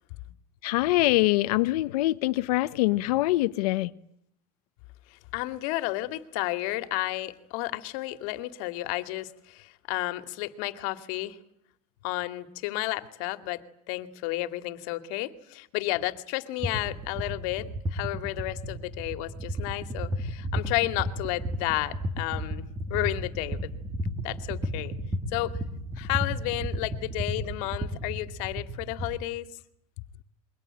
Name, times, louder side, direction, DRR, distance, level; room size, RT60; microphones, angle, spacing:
voice 1, 0.6-3.9, left 18 dB, 90° left, 1.2 m, -24 dB
voice 2, 5.1-11.4 12.0-13.6 13.9-22.6 22.9-23.7 24.2-24.9 25.3-25.6 26.0-29.5, left 18 dB, 65° left, 2.4 m, -32 dB
sound 1, 16.6-29.2, equal, 15° right, 3.5 m, -33 dB
28.0 x 23.5 x 9.0 m
cardioid pair, 155°, 19 cm